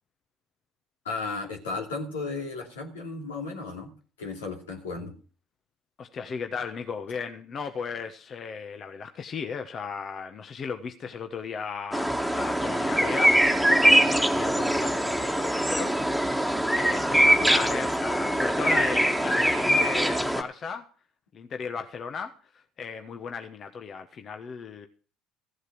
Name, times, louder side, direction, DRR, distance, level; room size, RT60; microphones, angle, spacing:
voice 1, 1.0-3.9 4.2-5.1, left 3 dB, 85° left, 2 dB, 2.8 m, -34 dB
voice 2, 6.0-16.2 16.7-20.8 21.3-24.9, left 6 dB, 45° left, 7 dB, 1.2 m, -36 dB
sound 1, 11.9-20.4, right 1 dB, ahead, 1.8 m, -23 dB
15.0 x 8.1 x 6.1 m, 0.38 s
hypercardioid pair, 60°, 0 cm